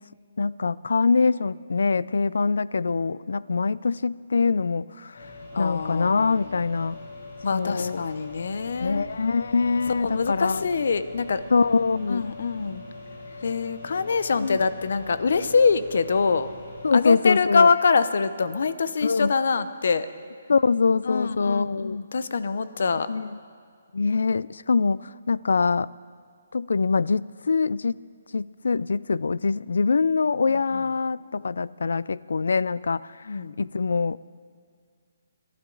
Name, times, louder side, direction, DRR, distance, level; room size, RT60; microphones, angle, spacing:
voice 1, 0.4-5.2 5.6-7.0 7.5-8.0 8.8-10.6 11.5-12.2 14.4-14.6 16.8-17.7 19.0-19.3 20.5-22.0 23.1-23.3 23.9-25.9 26.5-28.0 28.3-33.2 33.6-34.2, left 4 dB, 80° left, 20 dB, 0.3 m, -24 dB
sound 1, 5.1-16.9, left 2 dB, 35° left, 4.5 m, -42 dB
voice 2, 5.5-6.6 7.4-9.1 10.0-11.4 12.1-12.8 13.4-16.5 16.9-20.1 21.0-23.1 30.5-30.9 33.2-33.5, left 5 dB, 55° left, 13 dB, 0.7 m, -24 dB
27.0 x 12.0 x 3.9 m, 2.1 s
hypercardioid pair, 180°, 0 cm